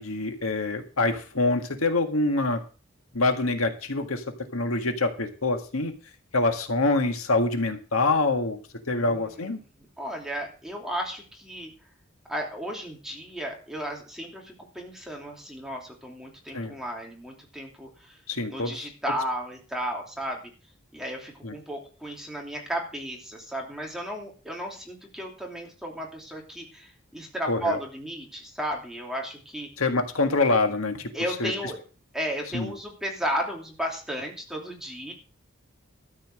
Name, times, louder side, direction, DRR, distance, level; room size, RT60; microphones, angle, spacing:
voice 1, 0.0-2.6 3.1-4.2 4.5-5.9 6.3-8.6 8.9-9.6 16.5-16.8 18.3-18.9 21.4-21.6 27.5-27.8 29.8-31.1 31.4-31.5 32.5-32.7, left 2 dB, 80° left, 5 dB, 1.8 m, -25 dB
voice 2, 9.0-9.6 10.0-11.7 12.3-18.1 18.5-20.4 20.9-29.7 31.1-31.8 32.1-35.1, equal, ahead, -1 dB, 2.8 m, -34 dB
13.0 x 5.8 x 7.6 m, 0.37 s
head